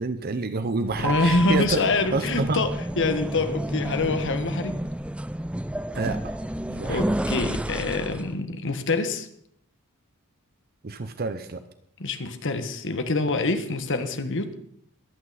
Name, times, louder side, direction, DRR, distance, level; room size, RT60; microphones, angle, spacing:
voice 1, 0.0-1.9 2.1-2.6 5.9-6.3 6.7-7.0 10.8-11.6, right 3 dB, 45° right, 10 dB, 0.7 m, -28 dB
sound 1, 0.8-8.3, right 1 dB, 5° right, 0.4 m, -30 dB
voice 2, 1.0-4.8 6.8-9.3 12.0-14.5, left 3 dB, 55° left, 8 dB, 1.4 m, -26 dB
22.5 x 8.7 x 4.1 m, 0.68 s
head